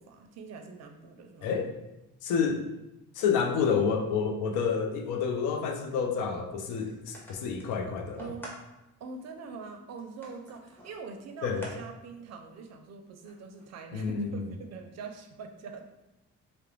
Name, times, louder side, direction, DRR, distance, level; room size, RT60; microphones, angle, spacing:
voice 1, 0.0-1.5 8.2-8.6 9.0-15.8, right 4 dB, 60° right, 5 dB, 0.4 m, -44 dB
voice 2, 1.4-1.7 2.2-2.6 3.2-8.3 11.4-11.6 13.9-14.4, left 6 dB, 90° left, 3 dB, 0.5 m, -29 dB
sound 1, 6.7-8.6 9.2-9.3 10.0-11.8 12.1-12.2 13.2-14.3, equal, 5° left, 0.7 m, -48 dB
2.4 x 2.0 x 3.0 m, 0.97 s
cardioid pair, 90°, 30 cm